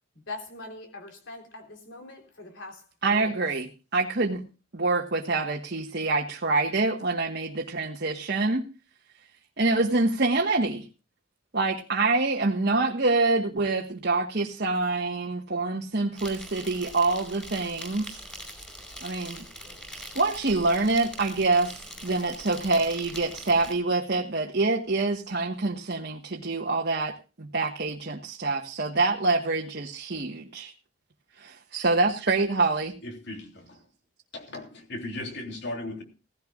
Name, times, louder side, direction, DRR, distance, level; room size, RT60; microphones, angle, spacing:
voice 1, 0.3-2.8 3.1-3.4, left 2 dB, 80° left, 3.5 m, -42 dB
voice 2, 3.0-4.4 4.7-8.6 9.6-10.9 11.5-18.2 19.0-19.4 20.1-30.7 31.4-32.9, right 3 dB, 55° right, 1.3 m, -26 dB
Insect, 16.2-23.7, equal, 5° left, 4.9 m, -42 dB
voice 3, 33.0-33.8 34.3-36.0, left 2 dB, 60° left, 3.2 m, -37 dB
17.0 x 15.5 x 2.4 m
head